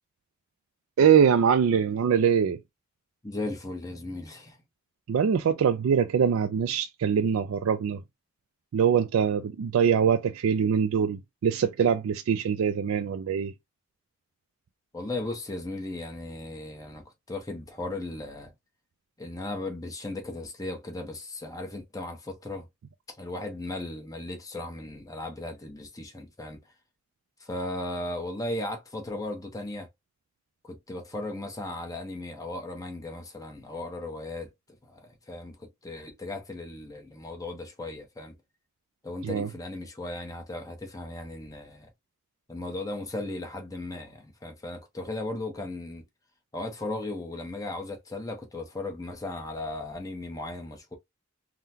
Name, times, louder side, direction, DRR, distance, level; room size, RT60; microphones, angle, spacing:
voice 1, 1.0-2.6 5.1-8.0 8.7-13.5 39.2-39.5, right 7 dB, 80° right, 0.3 m, -23 dB
voice 2, 3.2-4.6 14.9-18.5 19.2-22.7 23.2-26.6 27.4-29.9 30.6-34.5 34.9-38.3 39.0-41.9 42.5-46.0 46.5-51.0, left 2 dB, 15° left, 0.8 m, -36 dB
3.7 x 2.1 x 2.7 m
head